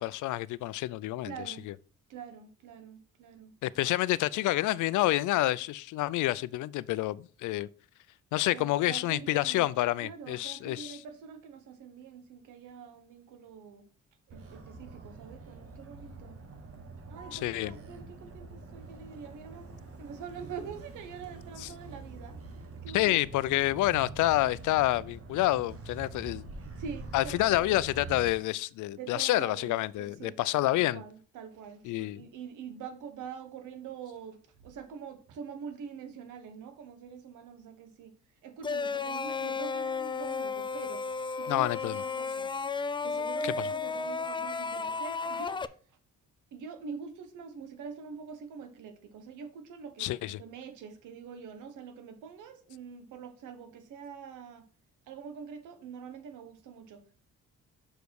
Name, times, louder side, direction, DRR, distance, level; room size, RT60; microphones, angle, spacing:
voice 1, 0.0-1.7 3.6-7.7 8.3-11.0 17.3-17.7 21.6-21.7 22.9-26.5 27.1-31.0 31.8-32.3 41.5-42.0 43.4-43.7 50.0-50.4, left 16 dB, 80° left, 0.4 m, -28 dB
voice 2, 1.2-1.6 2.1-3.5 8.5-9.6 10.0-13.8 14.3-16.4 17.1-19.7 20.0-22.4 22.8-23.4 26.8-27.8 28.9-34.4 34.6-38.1 38.4-41.0 41.4-42.5 43.0-45.6 46.5-54.6 55.1-57.0, right 6 dB, 85° right, 1.4 m, -45 dB
Motor vehicle (road), 14.3-28.3, right 3 dB, 50° right, 1.6 m, -45 dB
sound 1, 38.6-45.7, left 4 dB, 15° left, 0.4 m, -33 dB
6.5 x 5.0 x 4.7 m
cardioid pair, 90°, 30 cm